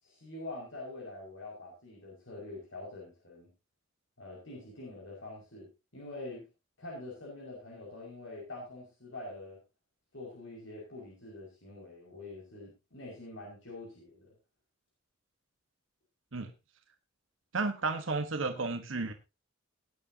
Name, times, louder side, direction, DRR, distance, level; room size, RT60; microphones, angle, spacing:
voice 1, 0.0-3.5 4.2-6.4 6.8-9.6 10.1-14.3, left 2 dB, 85° left, -3 dB, 5.6 m, -45 dB
voice 2, 17.5-19.1, right 3 dB, 90° right, 7 dB, 1.3 m, -32 dB
19.0 x 9.6 x 2.8 m, 0.27 s
head